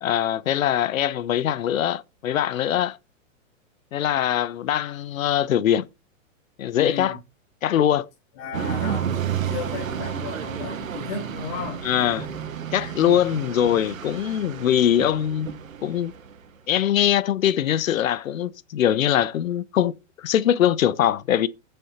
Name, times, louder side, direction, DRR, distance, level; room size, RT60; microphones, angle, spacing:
voice 1, 0.0-3.0 3.9-5.9 6.6-7.2 7.6-8.1 11.8-12.3 12.7-15.5 15.8-16.1 16.7-21.5, left 10 dB, 90° left, 0.7 m, -22 dB
voice 2, 6.7-7.2 8.4-11.8 12.8-13.0, left 6 dB, 40° left, 3.4 m, -35 dB
sound 1, 8.5-16.5, right 8 dB, 90° right, 1.5 m, -31 dB
18.0 x 7.0 x 2.8 m
hypercardioid pair, 145°, 39 cm